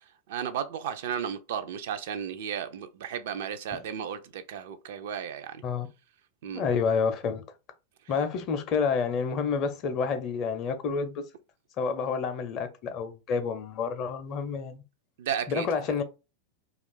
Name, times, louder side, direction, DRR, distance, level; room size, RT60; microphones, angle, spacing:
voice 1, 0.3-5.6 6.4-6.6 15.2-15.7, right 8 dB, 55° right, 0.4 m, -34 dB
voice 2, 6.5-7.4 8.1-11.2 11.8-14.8 15.5-16.0, left 5 dB, 35° left, 0.5 m, -29 dB
2.4 x 2.4 x 3.6 m
figure-of-eight pair, 90°, 0 cm